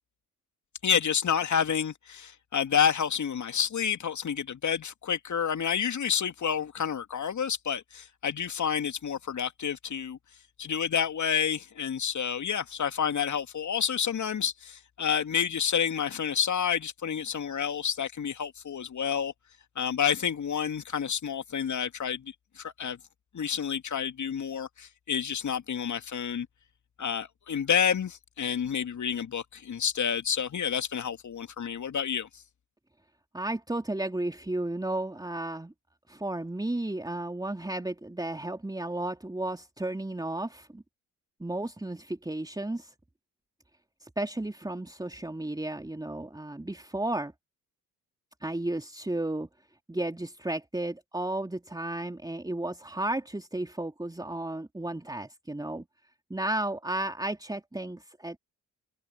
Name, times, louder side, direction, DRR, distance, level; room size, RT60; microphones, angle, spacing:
voice 1, 0.8-10.2 10.6-19.3 19.8-23.0 23.3-26.5 27.0-32.3, left 7 dB, 40° left, 2.8 m, -29 dB
voice 2, 33.3-35.7 36.1-40.8 41.4-42.9 44.0-47.3 48.4-49.5 49.9-55.8 56.3-58.4, right 1 dB, 10° right, 3.3 m, -33 dB
figure-of-eight pair, 45°, 46 cm